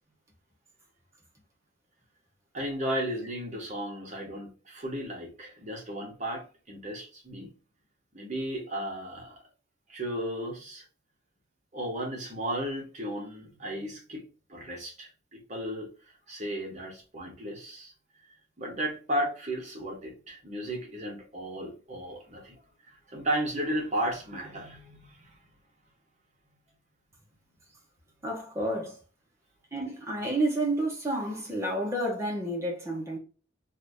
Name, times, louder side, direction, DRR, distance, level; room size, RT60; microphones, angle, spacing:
voice 1, 2.5-7.5 8.1-9.4 9.9-10.8 11.7-15.9 16.3-17.9 18.6-22.6 22.9-25.3, right 1 dB, 35° right, 1.0 m, -34 dB
voice 2, 28.2-29.0 29.7-33.2, right 1 dB, 15° right, 0.9 m, -30 dB
2.7 x 2.6 x 3.4 m
head